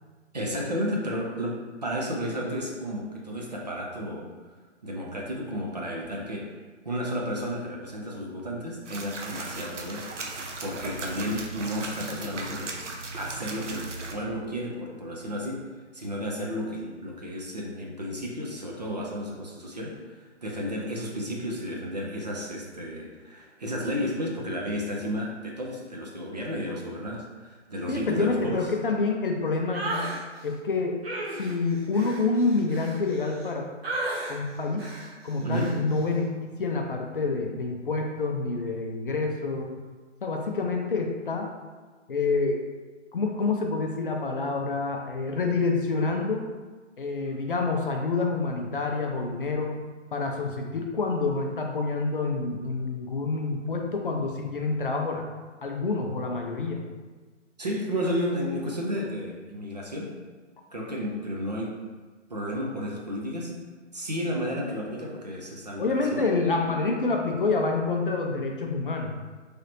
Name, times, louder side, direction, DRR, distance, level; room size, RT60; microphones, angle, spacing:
voice 1, 0.3-4.3 4.8-6.6 6.8-10.1 10.6-12.8 13.1-15.7 15.9-28.7 35.4-35.8 57.6-60.2 60.7-61.8 62.3-63.6 63.9-66.3, equal, 35° right, -2 dB, 0.4 m, -32 dB
sound 1, 8.8-14.1, right 3 dB, 75° right, 0.6 m, -37 dB
voice 2, 27.9-30.1 30.4-31.0 31.4-33.7 34.3-34.9 35.2-36.3 36.6-39.7 40.2-41.5 42.1-42.6 43.1-46.4 47.0-49.8 50.1-55.2 55.6-56.8 65.8-69.1, left 3 dB, 50° left, 2 dB, 0.4 m, -27 dB
sound 2, 29.7-30.2 31.0-33.5 33.8-34.4 34.8-35.1 35.5-35.8, right 2 dB, 55° right, 1.0 m, -34 dB
3.2 x 2.7 x 2.9 m, 1.4 s
figure-of-eight pair, 140°, 37 cm